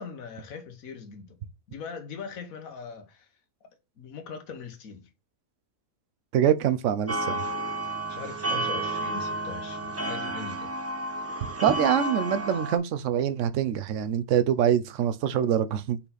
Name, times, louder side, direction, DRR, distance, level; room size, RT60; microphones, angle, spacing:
voice 1, 0.0-1.4 1.7-3.3 4.0-5.1 8.1-10.7, left 5 dB, 75° left, 1.6 m, -40 dB
voice 2, 6.3-7.4 11.6-16.0, right 9 dB, 65° right, 1.0 m, -25 dB
sound 1, 7.1-12.8, right 2 dB, 15° right, 0.6 m, -31 dB
5.6 x 4.4 x 4.1 m
omnidirectional pair, 1.5 m